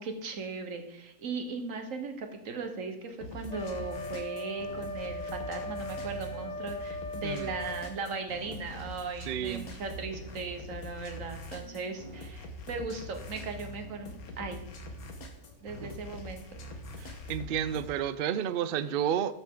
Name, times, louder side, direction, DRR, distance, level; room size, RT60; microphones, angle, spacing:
voice 1, 0.0-14.6 15.6-16.6, right 4 dB, 65° right, 1.5 m, -38 dB
sound 1, 3.2-18.0, left 1 dB, 85° left, 1.7 m, -44 dB
Wind instrument woodwind instrument, 3.5-7.9, left 1 dB, 50° left, 0.5 m, -39 dB
voice 2, 9.3-9.6 15.8-15.9 17.0-19.3, right 9 dB, 85° right, 0.5 m, -31 dB
13.5 x 6.9 x 3.7 m
omnidirectional pair, 1.5 m